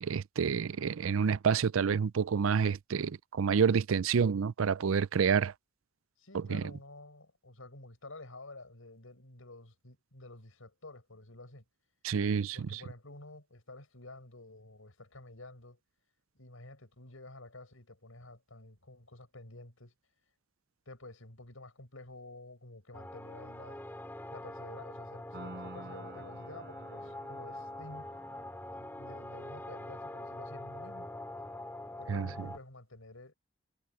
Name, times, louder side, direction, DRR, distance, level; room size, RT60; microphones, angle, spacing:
voice 1, 0.0-5.5 6.3-6.6 12.0-12.8 32.1-32.5, right 6 dB, 80° right, 0.5 m, -28 dB
voice 2, 6.2-11.6 12.5-15.8 16.4-19.9 20.9-23.8 24.3-28.1 28.8-31.1 32.0-33.3, left 2 dB, 85° left, 5.5 m, -50 dB
sound 1, 22.9-32.6, left 1 dB, 10° left, 3.5 m, -44 dB
Piano, 25.3-32.1, right 1 dB, 55° right, 5.9 m, -53 dB
head